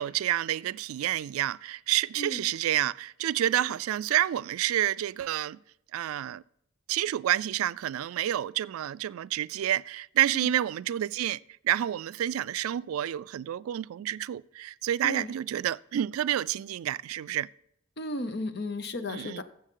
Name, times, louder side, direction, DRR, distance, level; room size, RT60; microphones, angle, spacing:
voice 1, 0.0-5.6 5.9-6.4 6.9-11.4 11.6-17.5 19.0-19.4, right 12 dB, 85° right, 0.3 m, -29 dB
voice 2, 18.0-19.4, left 2 dB, 50° left, 0.8 m, -34 dB
15.5 x 7.0 x 3.8 m
head